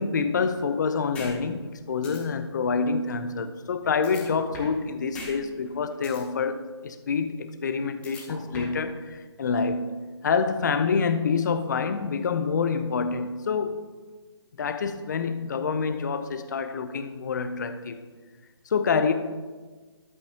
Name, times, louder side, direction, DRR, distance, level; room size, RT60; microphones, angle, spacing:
voice 1, 0.0-13.8 14.6-18.0 18.7-19.1, left 5 dB, 40° left, 0.6 m, -27 dB
sound 1, 1.1-1.3 1.7-1.8 2.0-2.2 4.0-4.8 5.1-5.3 5.7-6.2 8.0-8.8, left 2 dB, 10° left, 0.9 m, -40 dB
11.0 x 8.4 x 2.9 m
figure-of-eight pair, 155°, 15 cm